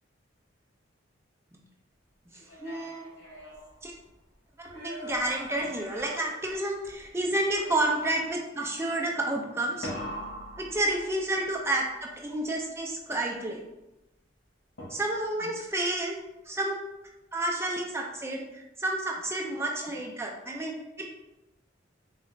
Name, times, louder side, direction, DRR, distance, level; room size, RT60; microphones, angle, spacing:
sound 1, 2.3-4.2 4.7-7.1 7.5-8.5 9.8-11.4 14.8-15.4, equal, 90° left, 1.1 m, -42 dB
voice 1, 2.6-3.0 3.8-3.9 4.6-9.9 10.6-13.6 14.9-16.8 17.3-21.1, right 1 dB, 15° right, 0 dB, 0.3 m, -30 dB
4.0 x 2.4 x 3.2 m, 0.95 s
head